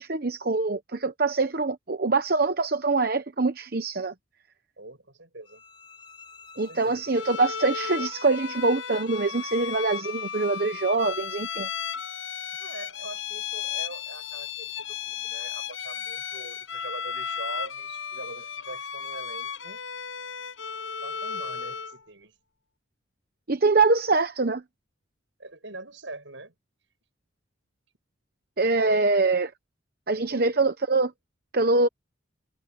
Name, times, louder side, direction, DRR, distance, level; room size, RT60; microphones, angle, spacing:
voice 1, 0.0-4.1 6.6-11.7 23.5-24.6 28.6-29.5 30.1-31.1 31.5-31.9, right 3 dB, 50° right, 1.0 m, -24 dB
voice 2, 4.8-5.6 6.5-7.3 12.6-19.8 21.0-22.4 25.4-26.5 28.8-29.2 30.1-30.5, right 2 dB, 70° right, 7.8 m, -43 dB
sound 1, 5.4-11.6, left 5 dB, 25° left, 4.3 m, -51 dB
Bowed string instrument, 7.1-22.0, left 7 dB, 85° left, 6.0 m, -35 dB
head